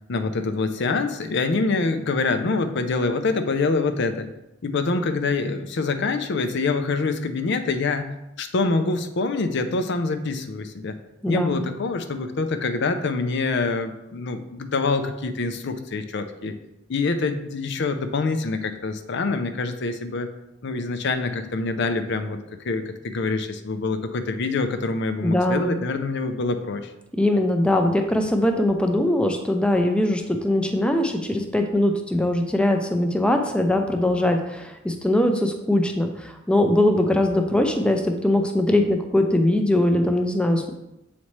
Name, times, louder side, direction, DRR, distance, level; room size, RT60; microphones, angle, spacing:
voice 1, 0.1-4.3 4.6-8.1 8.4-11.0 11.3-16.5 16.9-20.3 20.6-22.4 22.6-26.9, left 3 dB, 60° left, 8 dB, 0.5 m, -25 dB
voice 2, 11.2-11.6 25.2-25.8 27.2-40.7, left 1 dB, 5° left, 4 dB, 0.5 m, -21 dB
7.2 x 4.1 x 3.2 m, 0.90 s
head